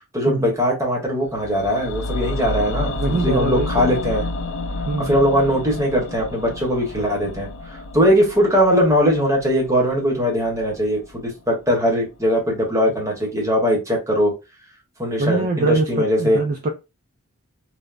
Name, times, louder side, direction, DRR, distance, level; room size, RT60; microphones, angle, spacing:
voice 1, 0.1-4.2 5.0-7.5 7.9-14.3 15.0-16.4, equal, 15° right, 1.0 m, -20 dB
sound 1, 1.3-11.4 11.7-11.8, left 2 dB, 60° left, 0.4 m, -30 dB
voice 2, 2.9-4.0 4.9-5.1 15.2-16.7, right 2 dB, 35° right, 0.3 m, -23 dB
3.3 x 2.0 x 2.4 m
head